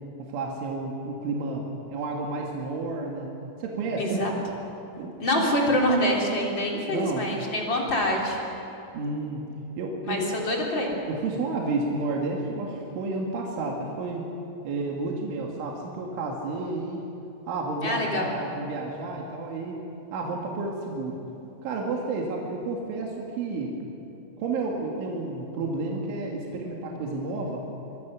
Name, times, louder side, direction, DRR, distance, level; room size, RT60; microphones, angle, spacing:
voice 1, 0.2-3.3 3.6-4.3 5.0-5.1 6.9-7.3 8.9-10.4 11.1-14.3 14.6-17.0 17.5-19.8 20.1-21.2 21.6-23.7 24.4-27.6, right 3 dB, 70° right, -1 dB, 4.3 m, -31 dB
voice 2, 4.0-4.3 5.2-8.4 10.1-10.9 17.8-18.3, left 1 dB, 25° left, -2 dB, 2.9 m, -25 dB
24.0 x 24.0 x 6.3 m, 2.8 s
omnidirectional pair, 6.0 m